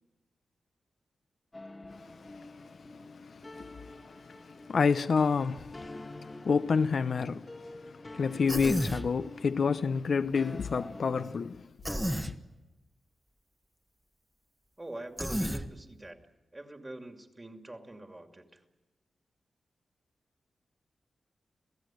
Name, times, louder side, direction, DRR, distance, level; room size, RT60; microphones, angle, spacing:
sound 1, 1.5-11.4, left 2 dB, 25° left, 1.5 m, -48 dB
voice 1, 3.0-4.2 4.5-11.6, left 5 dB, 60° left, 0.7 m, -29 dB
Human voice, 8.5-9.1 11.8-12.3 15.2-15.6, equal, 5° right, 1.4 m, -31 dB
voice 2, 14.8-16.2 16.5-18.6, right 1 dB, 20° right, 2.7 m, -45 dB
27.5 x 16.5 x 9.2 m
wide cardioid pair, 90°, 0 cm